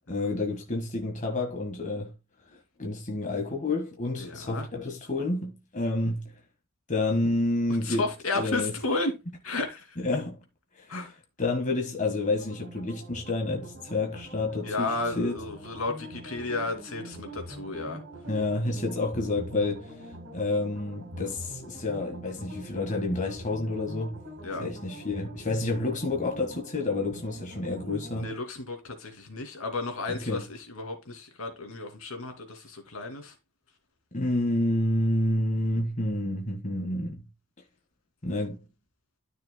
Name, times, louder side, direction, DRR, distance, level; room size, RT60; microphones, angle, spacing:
voice 1, 0.1-2.1 2.8-6.3 6.9-8.0 8.3-8.7 10.0-10.3 10.8-10.9 11.4-15.4 18.3-20.0 20.3-24.2 24.6-28.3 30.1-30.4 34.1-37.2 38.2-38.6, left 2 dB, 35° left, 1.6 m, -29 dB
voice 2, 4.2-4.7 7.7-9.1 9.4-10.0 10.9-11.1 14.6-18.0 24.4-24.6 28.1-33.3, left 3 dB, 70° left, 2.6 m, -33 dB
sound 1, 12.4-28.3, equal, 60° right, 4.0 m, -44 dB
12.5 x 6.5 x 2.2 m
head